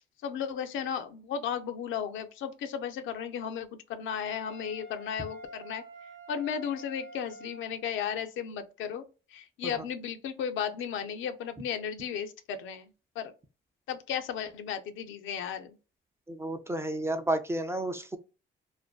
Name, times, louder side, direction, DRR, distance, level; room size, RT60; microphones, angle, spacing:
voice 1, 0.0-5.8 6.3-9.0 9.3-12.9 13.2-13.3 13.9-15.8, left 8 dB, 75° left, 0.4 m, -35 dB
Wind instrument woodwind instrument, 4.1-7.9, right 1 dB, 75° right, 0.7 m, -48 dB
voice 2, 16.3-18.2, right 1 dB, 15° right, 0.3 m, -31 dB
2.5 x 2.2 x 2.2 m
cardioid pair, 90°, 20 cm